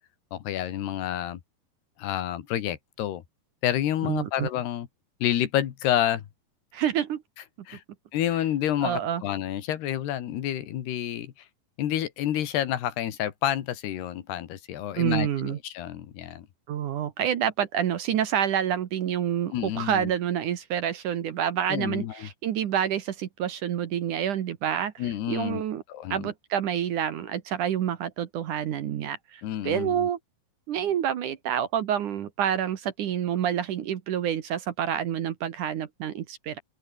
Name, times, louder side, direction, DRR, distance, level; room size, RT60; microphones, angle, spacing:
voice 1, 0.3-1.4 2.0-3.2 3.6-4.9 5.2-6.2 7.7-7.8 8.1-11.3 11.8-16.5 19.5-20.1 21.7-22.3 25.0-25.6 25.9-26.3 29.4-30.1, left 11 dB, 80° left, 3.9 m, -29 dB
voice 2, 4.0-4.5 6.7-7.2 8.8-9.2 15.0-15.6 16.7-25.8 26.1-30.2 30.7-36.6, right 9 dB, 60° right, 2.5 m, -28 dB
open air
omnidirectional pair, 4.6 m